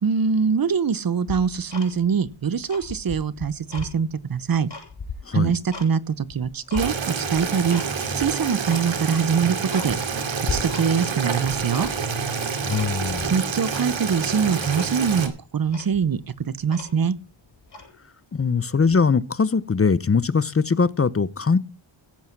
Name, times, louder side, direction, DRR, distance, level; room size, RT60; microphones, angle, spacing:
voice 1, 0.0-4.7 5.3-7.8 8.2-10.0 10.5-11.9 13.3-16.2 16.5-17.2, right 6 dB, 45° right, 0.9 m, -23 dB
Tick-tock, 1.3-2.3 2.6-3.9 4.4-5.9 6.3-6.9 7.4-7.9 8.2-8.3 8.7-8.9 9.3-9.4 9.7-10.2 10.5-11.1 11.4-12.2 12.7-13.3 13.7-13.9 14.3-14.4 14.7-14.9 15.4-15.5 15.7-17.2 17.6-17.9, left 4 dB, 55° left, 7.4 m, -36 dB
Boiling, 6.8-15.3, right 5 dB, 65° right, 2.5 m, -28 dB
voice 2, 12.6-13.3 18.3-21.6, left 5 dB, 25° left, 0.7 m, -21 dB
16.0 x 8.2 x 5.9 m
wide cardioid pair, 90°, 50 cm